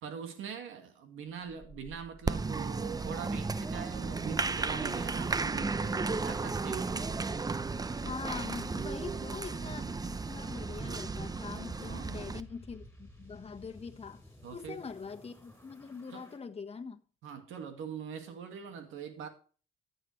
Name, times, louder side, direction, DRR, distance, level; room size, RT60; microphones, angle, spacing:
voice 1, 0.0-7.1 11.8-12.2 14.4-14.8 16.1-16.3 17.2-19.3, right 7 dB, 90° right, 2.0 m, -43 dB
sound 1, 1.4-16.4, equal, 10° left, 4.7 m, -49 dB
Applause, 2.3-12.4, right 4 dB, 20° right, 0.5 m, -34 dB
voice 2, 7.9-14.2 14.5-17.0, left 5 dB, 30° left, 1.4 m, -43 dB
14.0 x 7.8 x 3.2 m
cardioid pair, 90°, 20 cm